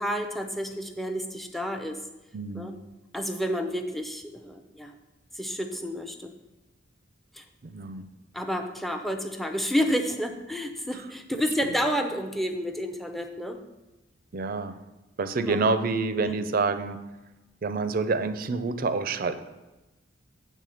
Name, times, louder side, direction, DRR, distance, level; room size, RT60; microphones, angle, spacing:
voice 1, 0.0-2.0 2.5-2.8 3.1-4.9 5.4-6.3 7.3-7.4 8.3-13.6 15.4-15.6 16.2-16.5, equal, ahead, 5 dB, 0.5 m, -30 dB
voice 2, 2.3-2.7 7.6-8.0 11.6-11.8 14.3-14.7 15.2-17.0 17.6-19.4, right 4 dB, 50° right, 11 dB, 0.5 m, -27 dB
8.3 x 3.6 x 6.4 m, 1.1 s
head